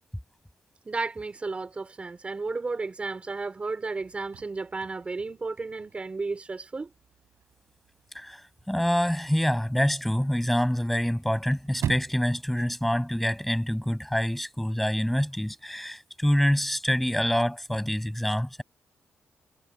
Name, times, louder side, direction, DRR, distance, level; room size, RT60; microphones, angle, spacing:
voice 1, 0.8-6.9, right 3 dB, 25° right, 4.4 m, -33 dB
Chirp tweet / Car / Slam, 4.0-14.0, right 9 dB, 80° right, 6.3 m, -43 dB
voice 2, 8.1-18.6, equal, 5° left, 6.2 m, -26 dB
wide cardioid pair, 135°, 5 cm